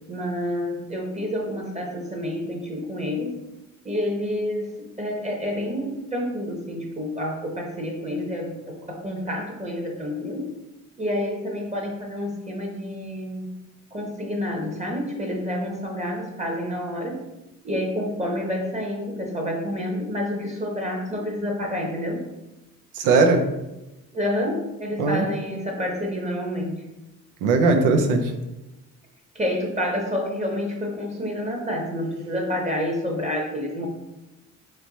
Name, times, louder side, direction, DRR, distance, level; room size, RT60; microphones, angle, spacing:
voice 1, 0.1-3.4 3.8-10.5 11.0-13.4 13.9-17.3 17.6-22.2 24.1-26.8 29.3-33.9, left 1 dB, 20° right, 0 dB, 1.0 m, -28 dB
voice 2, 22.9-23.4 25.0-25.3 27.4-28.3, right 3 dB, 90° right, 4 dB, 0.6 m, -19 dB
3.3 x 3.1 x 4.0 m, 0.98 s
cardioid pair, 90°, 30 cm